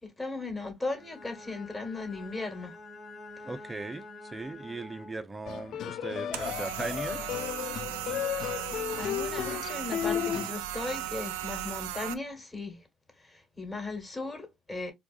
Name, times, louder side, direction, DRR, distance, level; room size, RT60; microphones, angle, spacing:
voice 1, 0.0-2.8 9.0-12.8 13.2-14.9, left 3 dB, 20° left, 1.7 m, -37 dB
Bowed string instrument, 0.9-5.4, left 2 dB, 35° left, 1.4 m, -47 dB
voice 2, 3.4-7.2, right 2 dB, 20° right, 0.7 m, -38 dB
sound 1, 5.5-10.5, left 10 dB, 65° left, 0.3 m, -34 dB
sound 2, 6.3-12.1, right 12 dB, 85° right, 0.3 m, -36 dB
4.5 x 2.4 x 2.5 m
hypercardioid pair, 60°, 0 cm